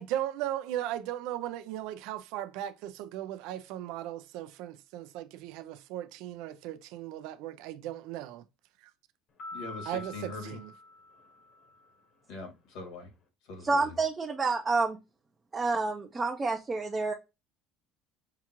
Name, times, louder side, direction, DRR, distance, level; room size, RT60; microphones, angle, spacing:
voice 1, 0.0-8.4 8.8-8.9 9.8-10.7, right 12 dB, 75° right, 0.4 m, -37 dB
sound 1, 9.4-11.9, left 2 dB, 45° left, 1.1 m, -46 dB
voice 2, 9.5-10.6 12.3-13.1 13.5-13.9, left 2 dB, 75° left, 2.1 m, -42 dB
voice 3, 13.6-15.0 15.5-17.1, right 3 dB, 20° right, 0.5 m, -28 dB
5.6 x 2.4 x 2.9 m
cardioid pair, 130°, 0 cm